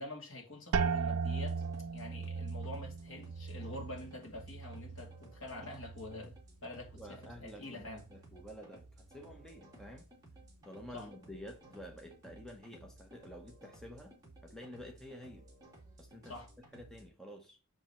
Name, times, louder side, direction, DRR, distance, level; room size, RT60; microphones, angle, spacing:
voice 1, 0.0-1.6 1.9-6.4 6.6-7.0 7.4-8.0 10.9-11.1 16.3-16.5, left 2 dB, 60° left, 2.5 m, -46 dB
sound 1, 0.7-6.4 6.7-7.4 7.9-8.3, right 5 dB, 80° right, 0.4 m, -38 dB
sound 2, 1.3-17.0, right 2 dB, 15° right, 2.6 m, -57 dB
voice 2, 7.0-10.1 10.6-14.1 14.4-15.5 16.0-17.6, equal, 5° left, 0.9 m, -50 dB
6.8 x 5.3 x 4.3 m
head